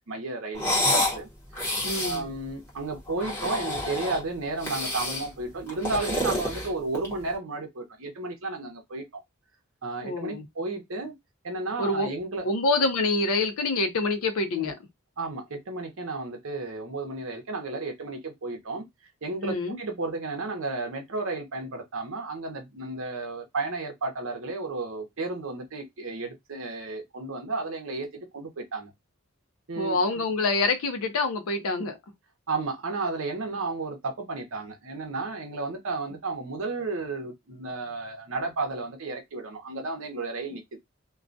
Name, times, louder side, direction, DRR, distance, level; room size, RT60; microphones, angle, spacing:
voice 1, 0.1-1.3 1.5-1.7 2.0-9.2 9.8-11.1 11.4-12.5 14.6-14.7 15.2-18.8 19.2-28.1 28.3-28.9 29.7-30.0 32.5-40.8, right 3 dB, 65° right, 0.7 m, -33 dB
sound 1, 0.5-1.2 1.5-2.2 3.1-4.2 4.6-5.3 5.7-7.2, left 1 dB, 10° left, 0.8 m, -28 dB
voice 2, 1.8-2.3 10.0-10.5 11.8-12.1 12.4-14.7 19.4-19.8 29.8-32.0, left 3 dB, 75° left, 0.5 m, -26 dB
2.2 x 2.2 x 2.5 m
head